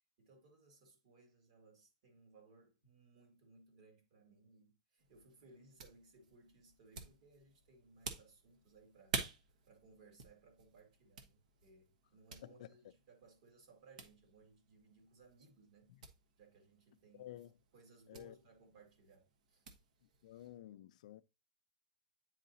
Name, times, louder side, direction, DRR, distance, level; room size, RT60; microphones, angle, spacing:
voice 1, 0.2-9.2 9.7-15.9 16.4-17.3 17.7-19.6, right 3 dB, 55° right, 2.2 m, -64 dB
sound 1, 5.0-20.6, right 4 dB, 80° right, 1.3 m, -51 dB
voice 2, 12.4-12.8 15.9-16.1 17.1-17.5 18.1-18.4 20.2-21.2, left 13 dB, 65° left, 0.4 m, -52 dB
9.2 x 4.0 x 2.7 m
supercardioid pair, 170°, 4 cm